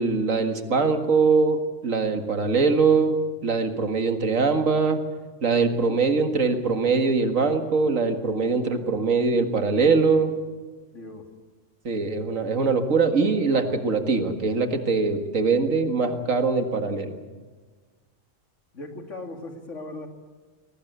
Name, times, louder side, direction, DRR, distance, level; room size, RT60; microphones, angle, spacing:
voice 1, 0.0-5.0 5.4-10.3 11.8-17.2, right 4 dB, 85° right, 6 dB, 2.2 m, -22 dB
voice 2, 8.7-9.1 10.9-11.3 18.7-20.1, left 2 dB, 70° left, 4 dB, 2.9 m, -39 dB
23.0 x 19.0 x 8.1 m, 1.4 s
omnidirectional pair, 1.3 m